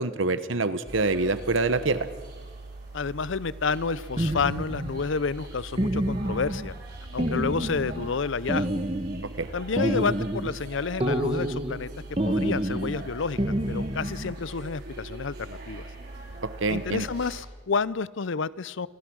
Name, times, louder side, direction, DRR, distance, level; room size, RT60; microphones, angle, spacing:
voice 1, 0.0-2.1 9.4-9.5 16.6-17.0, right 3 dB, 75° right, 13 dB, 1.2 m, -25 dB
sound 1, 0.9-17.4, right 2 dB, 50° right, 4.4 m, -41 dB
voice 2, 2.9-6.7 7.1-8.8 9.5-11.9 12.2-15.9 16.7-18.9, left 5 dB, 70° left, 19 dB, 0.6 m, -30 dB
sound 2, 4.2-5.0 5.8-6.7 7.2-8.1 8.5-9.3 9.8-10.6 11.0-11.8 12.2-13.0 13.4-14.3, right 1 dB, 30° right, 1.3 m, -28 dB
27.0 x 15.5 x 6.3 m, 1.4 s
head